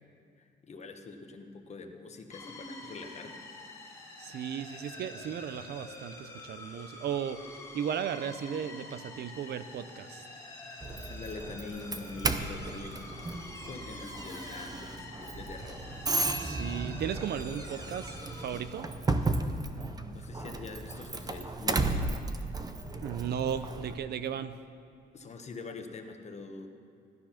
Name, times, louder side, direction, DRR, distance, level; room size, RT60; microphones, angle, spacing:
voice 1, 0.7-3.4 11.1-13.1 13.6-16.2 19.8-22.1 25.1-26.7, left 4 dB, 35° left, 4 dB, 1.3 m, -44 dB
sound 1, 2.3-18.6, left 2 dB, 15° left, 1.9 m, -47 dB
voice 2, 4.2-7.5 7.7-10.2 16.4-18.9 23.0-24.6, right 8 dB, 60° right, 12 dB, 0.6 m, -35 dB
Doorbell, 10.8-23.9, right 3 dB, 20° right, 0.7 m, -34 dB
15.0 x 12.5 x 5.8 m, 2.3 s
cardioid pair, 135°, 19 cm